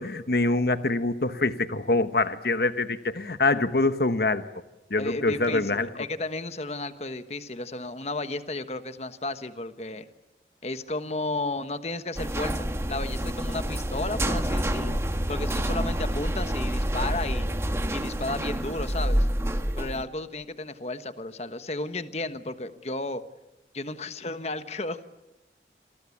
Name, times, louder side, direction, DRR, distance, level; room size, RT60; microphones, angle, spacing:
voice 1, 0.0-4.4 4.9-5.9, left 2 dB, 60° left, 11 dB, 1.1 m, -25 dB
voice 2, 5.0-10.1 10.6-15.0 15.3-17.4 17.9-19.3 19.8-23.2 23.7-25.0, left 2 dB, 35° left, 10 dB, 1.3 m, -33 dB
sound 1, 12.2-20.0, equal, 15° right, 1.4 m, -28 dB
28.0 x 22.0 x 8.5 m, 1.0 s
head